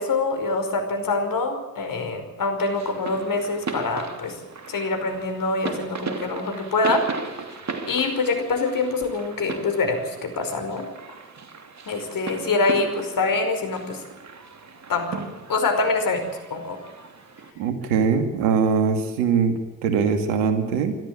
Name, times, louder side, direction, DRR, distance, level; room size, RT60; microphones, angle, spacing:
voice 1, 0.0-4.4 4.7-7.0 7.9-10.9 11.9-14.0 14.9-15.1 15.5-16.2 16.5-16.8, left 3 dB, 50° left, 6 dB, 5.3 m, -25 dB
sound 1, 2.6-17.5, right 4 dB, 40° right, 3.0 m, -37 dB
voice 2, 17.6-21.0, right 6 dB, 80° right, 8 dB, 2.5 m, -22 dB
25.0 x 13.0 x 8.9 m, 1.1 s
hypercardioid pair, 50°, 42 cm